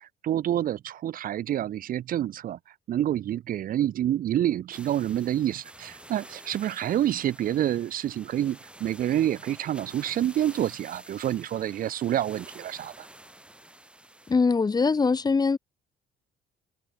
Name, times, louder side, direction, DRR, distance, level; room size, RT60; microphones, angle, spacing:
voice 1, 0.0-2.6 2.9-13.1, right 11 dB, 55° right, 1.1 m, -28 dB
sound 1, 4.7-14.3, right 1 dB, 5° right, 5.5 m, -49 dB
voice 2, 14.3-15.6, left 4 dB, 25° left, 1.6 m, -22 dB
cardioid pair, 110°, 17 cm